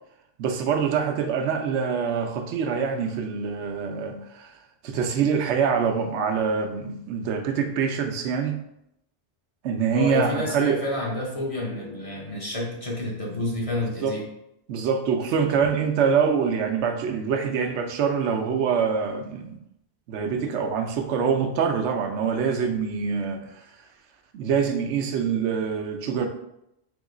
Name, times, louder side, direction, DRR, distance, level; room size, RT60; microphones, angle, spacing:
voice 1, 0.4-4.6 4.8-8.6 9.6-10.8 14.0-14.2 14.7-19.6 20.1-23.6 24.3-26.3, right 6 dB, 90° right, 5 dB, 0.9 m, -25 dB
voice 2, 9.9-14.2, left 1 dB, 35° left, -2 dB, 0.7 m, -29 dB
3.6 x 3.0 x 3.7 m, 0.82 s
omnidirectional pair, 1.1 m